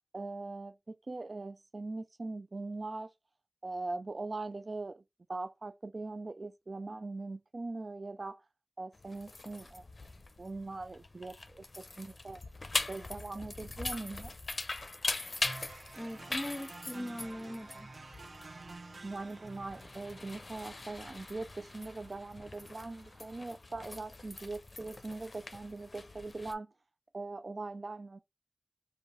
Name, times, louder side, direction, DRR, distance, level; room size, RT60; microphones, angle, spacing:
voice 1, 0.1-3.1 3.6-5.0 5.3-8.4 8.8-9.9 10.4-12.4 12.9-14.3 19.0-26.7 27.1-28.2, right 3 dB, 70° right, 0.3 m, -41 dB
opening and sliding metal grid gate with key, 8.9-26.5, left 3 dB, 70° left, 0.7 m, -42 dB
sound 1, 15.4-23.4, right 3 dB, 90° right, 0.7 m, -51 dB
voice 2, 16.0-17.9, equal, ahead, 1.3 m, -40 dB
5.3 x 2.5 x 3.1 m
wide cardioid pair, 55°, 0 cm